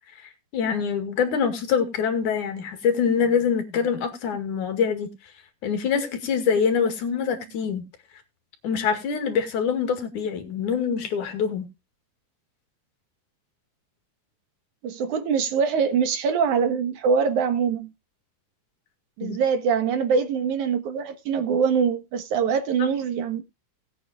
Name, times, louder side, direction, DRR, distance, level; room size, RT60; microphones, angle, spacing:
voice 1, 0.5-5.1 5.6-7.8 8.6-11.7 19.2-19.4 22.8-22.9, left 6 dB, 80° left, 3.6 m, -24 dB
voice 2, 14.8-17.9 19.2-23.4, right 6 dB, 75° right, 2.8 m, -23 dB
20.0 x 8.7 x 2.4 m
omnidirectional pair, 3.5 m